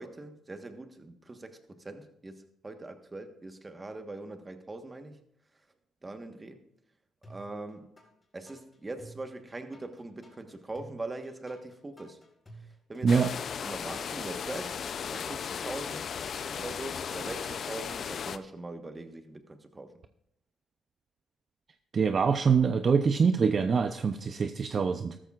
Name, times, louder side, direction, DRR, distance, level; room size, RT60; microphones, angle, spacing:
voice 1, 0.0-5.2 6.0-6.7 7.3-7.9 8.3-12.2 12.9-13.3 13.6-14.8 15.1-16.0 16.5-19.9, right 2 dB, 20° right, 1.3 m, -42 dB
sound 1, 7.2-8.1 8.5-14.1, right 2 dB, 25° left, 4.1 m, -53 dB
sound 2, 13.1-18.4, left 7 dB, 55° left, 0.5 m, -36 dB
voice 2, 21.9-25.2, right 5 dB, 45° right, 0.5 m, -24 dB
13.5 x 13.5 x 2.5 m
cardioid pair, 90°, 0 cm